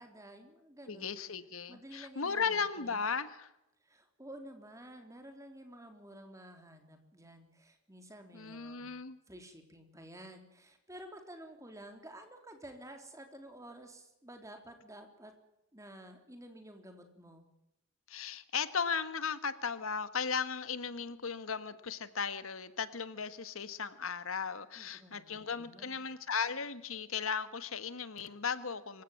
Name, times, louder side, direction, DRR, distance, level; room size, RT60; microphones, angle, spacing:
voice 1, 0.0-1.1 1.7-3.1 3.8-8.9 9.3-15.3 15.7-17.4 24.8-26.1, right 1 dB, 15° right, 5 dB, 3.6 m, -52 dB
voice 2, 0.9-3.5 8.3-9.2 18.1-29.0, left 6 dB, 80° left, 13 dB, 1.5 m, -36 dB
26.0 x 16.0 x 7.3 m, 0.88 s
head